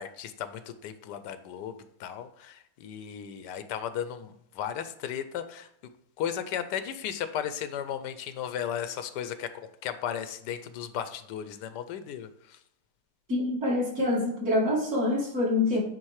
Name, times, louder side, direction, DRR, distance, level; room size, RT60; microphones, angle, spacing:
voice 1, 0.0-5.7 6.2-12.6, left 9 dB, 85° left, 11 dB, 1.2 m, -35 dB
voice 2, 13.3-15.8, left 2 dB, 45° right, -4 dB, 2.3 m, -26 dB
9.0 x 3.7 x 3.2 m, 0.78 s
omnidirectional pair, 1.8 m